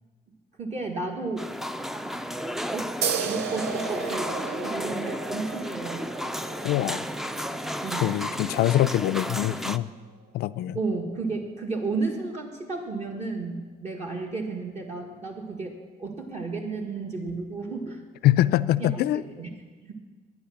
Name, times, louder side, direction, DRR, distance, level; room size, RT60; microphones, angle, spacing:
voice 1, 0.6-1.5 2.7-6.2 7.8-8.1 10.7-18.0 18.8-19.5 19.8-19.9, right 3 dB, 40° right, 1 dB, 1.6 m, -33 dB
sound 1, 1.4-9.8, equal, ahead, 0.4 m, -33 dB
sound 2, 3.0-10.1, right 7 dB, 80° right, 0.8 m, -35 dB
voice 2, 6.6-7.0 8.0-9.9 10.3-10.8 18.2-19.2, left 14 dB, 70° left, 16 dB, 0.4 m, -23 dB
12.0 x 9.5 x 7.0 m, 1.4 s
cardioid pair, 110°, 17 cm